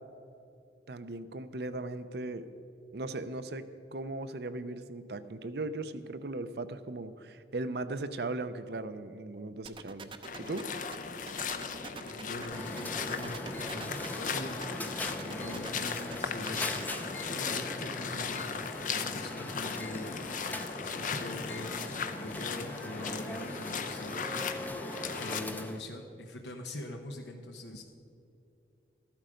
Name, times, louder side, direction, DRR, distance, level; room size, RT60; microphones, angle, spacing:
voice 1, 0.9-2.5 2.9-10.1 10.4-10.7, right 2 dB, 65° right, 12 dB, 0.6 m, -38 dB
sound 1, 9.7-17.0, right 4 dB, 30° right, 0.6 m, -45 dB
sound 2, 10.2-25.4, left 6 dB, 45° left, 0.7 m, -37 dB
voice 2, 12.0-18.7 18.9-20.3 20.8-24.2 25.1-27.8, left 1 dB, 80° left, 3 dB, 1.0 m, -43 dB
sound 3, 12.5-25.8, left 1 dB, 10° left, 0.6 m, -41 dB
13.5 x 12.0 x 5.1 m, 2.6 s
head